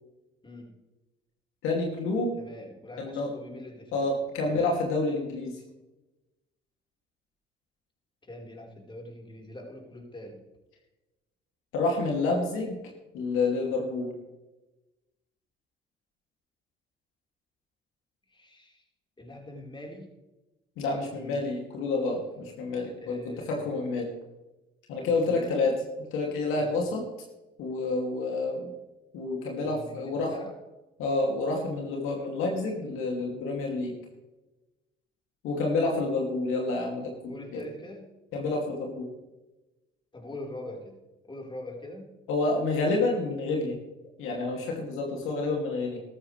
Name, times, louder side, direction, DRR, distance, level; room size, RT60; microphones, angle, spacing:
voice 1, 1.6-2.4 3.0-3.3 3.9-5.6 11.7-12.8 13.1-14.1 20.8-23.2 23.4-24.1 24.9-25.8 26.1-27.0 27.6-28.7 29.1-30.4 31.0-33.9 35.4-37.6 38.3-39.1 42.3-43.8 44.2-46.0, left 3 dB, 75° left, 0 dB, 2.7 m, -28 dB
voice 2, 2.4-4.1 4.4-4.6 8.2-10.4 18.3-18.8 19.2-20.1 21.1-21.5 23.0-23.7 25.0-25.7 26.5-26.8 29.6-30.5 37.3-38.1 40.1-41.0 41.2-42.1, left 1 dB, 25° left, 0 dB, 4.4 m, -43 dB
14.5 x 13.5 x 3.4 m, 1.0 s
hypercardioid pair, 60°, 21 cm